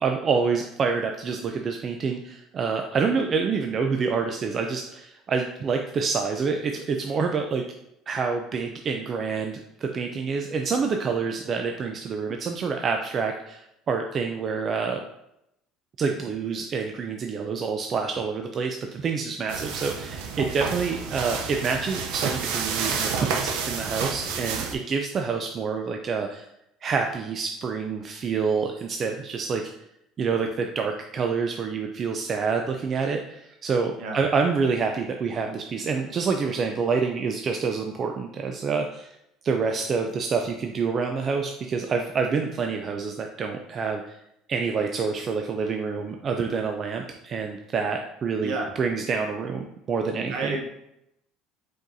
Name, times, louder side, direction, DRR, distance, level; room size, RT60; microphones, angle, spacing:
voice 1, 0.0-7.6 8.1-15.0 16.0-26.5 26.8-29.6 30.2-39.1 39.4-44.2 44.5-50.6, right 5 dB, 30° right, 4 dB, 0.3 m, -27 dB
sound 1, 19.5-24.7, right 5 dB, 80° right, 0.6 m, -30 dB
voice 2, 34.0-34.2 48.4-48.7 50.3-50.6, right 3 dB, 60° right, 2 dB, 0.9 m, -29 dB
5.0 x 3.9 x 2.6 m, 0.81 s
cardioid pair, 155°, 0 cm